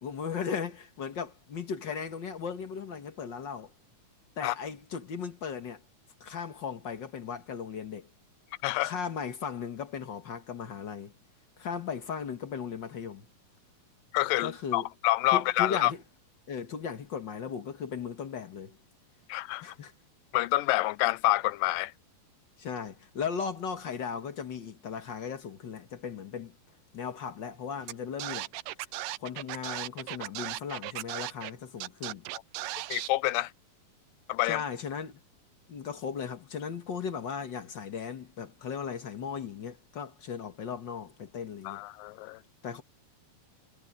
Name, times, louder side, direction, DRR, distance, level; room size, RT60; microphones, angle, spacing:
voice 1, 0.0-3.7 4.4-5.8 6.2-8.1 8.8-11.1 11.6-13.3 14.4-14.9 15.3-16.0 16.5-18.8 19.6-19.9 22.6-26.5 26.9-28.5 29.2-32.3 34.5-35.2 35.7-41.8 42.6-42.8, left 6 dB, 60° left, 1.2 m, -37 dB
voice 2, 8.6-8.9 14.1-15.9 19.3-19.6 20.3-21.9 32.9-33.5 34.3-34.6 41.7-42.4, left 17 dB, 80° left, 2.2 m, -27 dB
Scratching (performance technique), 27.9-28.0 28.2-31.5 31.8-33.1, right 16 dB, 80° right, 2.2 m, -36 dB
omnidirectional pair, 4.1 m